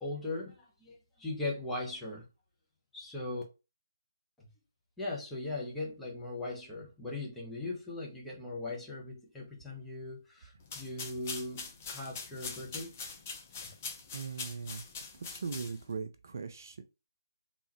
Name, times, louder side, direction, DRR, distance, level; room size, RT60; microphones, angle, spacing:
voice 1, 0.0-2.3 2.9-3.4 4.4-4.5 5.0-12.9 13.6-13.7, left 2 dB, 5° left, 1.0 m, -39 dB
sound 1, 10.6-16.0, left 4 dB, 35° left, 0.8 m, -43 dB
voice 2, 14.1-14.8 15.1-16.8, right 5 dB, 50° right, 0.5 m, -39 dB
3.6 x 3.1 x 3.0 m
figure-of-eight pair, 150°, 2 cm